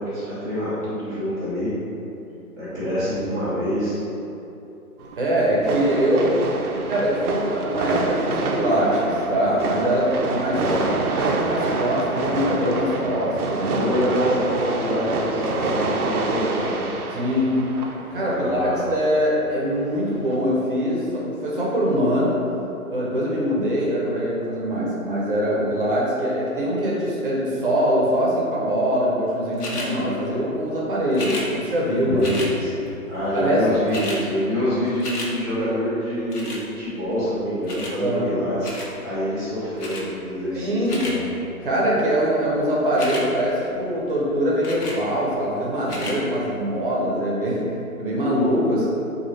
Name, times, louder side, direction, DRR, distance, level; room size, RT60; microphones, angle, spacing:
voice 1, 0.0-1.7 2.6-4.0 10.5-10.9 13.6-16.9 18.1-18.8 32.0-38.7 39.0-41.1, equal, 10° left, -18 dB, 0.5 m, -26 dB
sound 1, 5.0-20.3, right 3 dB, 75° right, 0.5 m, -27 dB
voice 2, 5.2-6.3 6.9-10.6 11.0-13.8 17.1-17.5 18.1-22.4 22.9-32.2 33.3-33.7 38.0-38.3 40.5-41.1 41.6-47.6 48.0-48.9, equal, 35° right, -5 dB, 0.6 m, -23 dB
sound 2, 29.6-29.9 31.1-31.5 32.2-32.5 33.4-33.5 33.7-34.2 34.6-35.3 36.3-36.6 37.7-38.0 38.6-38.9 39.8-40.0 40.6-41.2 42.9-43.2 44.6-45.0 45.8-46.2 46.8-46.9, left 1 dB, 90° left, 0.9 m, -32 dB
4.0 x 2.3 x 3.0 m, 2.9 s
figure-of-eight pair, 140°, 45 cm